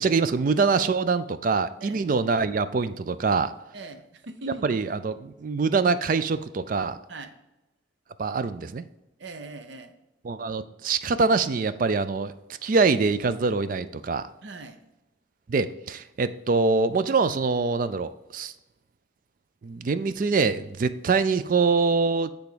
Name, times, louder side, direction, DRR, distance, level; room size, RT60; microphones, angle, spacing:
voice 1, 0.0-3.5 4.6-7.0 8.2-8.8 10.2-12.3 12.6-14.2 15.5-18.5 19.6-22.3, right 4 dB, 45° right, 13 dB, 0.3 m, -24 dB
voice 2, 3.7-5.0 7.1-7.4 9.2-10.0 14.4-14.8, right 3 dB, 65° right, 8 dB, 0.7 m, -40 dB
8.2 x 3.5 x 5.0 m, 0.95 s
head